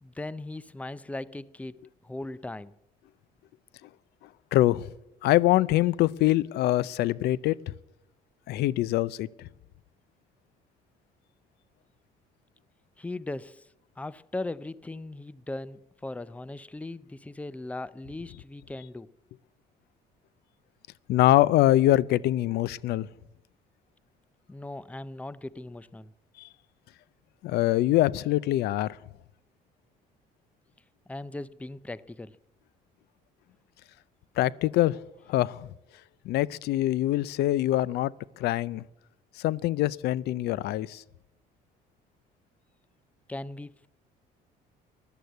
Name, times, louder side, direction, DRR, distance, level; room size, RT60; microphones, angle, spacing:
voice 1, 0.0-2.7 13.0-13.7 14.0-19.1 24.5-26.1 31.1-32.4 43.3-43.9, left 2 dB, 10° left, 0.5 m, -38 dB
voice 2, 4.5-4.9 5.2-7.7 8.5-9.5 21.1-23.1 26.4-26.5 27.4-29.0 34.4-35.0 35.3-35.7 36.2-38.8 39.4-41.0, left 15 dB, 75° left, 0.6 m, -24 dB
13.5 x 11.5 x 8.0 m
cardioid pair, 110°, 17 cm